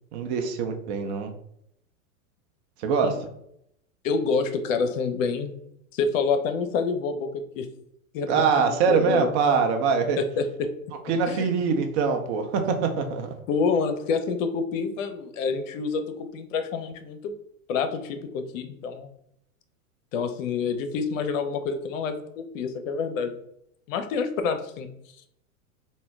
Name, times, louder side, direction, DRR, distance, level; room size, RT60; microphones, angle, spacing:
voice 1, 0.1-1.3 2.8-3.3 8.3-10.2 11.1-13.3, right 5 dB, 50° right, 5 dB, 0.7 m, -23 dB
voice 2, 4.0-5.6 5.9-7.7 8.1-8.4 8.9-9.3 10.2-10.7 11.3-11.5 13.5-17.3 17.7-19.1 20.1-23.3 23.9-24.9, left 5 dB, 65° left, 8 dB, 0.6 m, -27 dB
3.6 x 2.2 x 3.3 m, 0.75 s
hypercardioid pair, 110°, 43 cm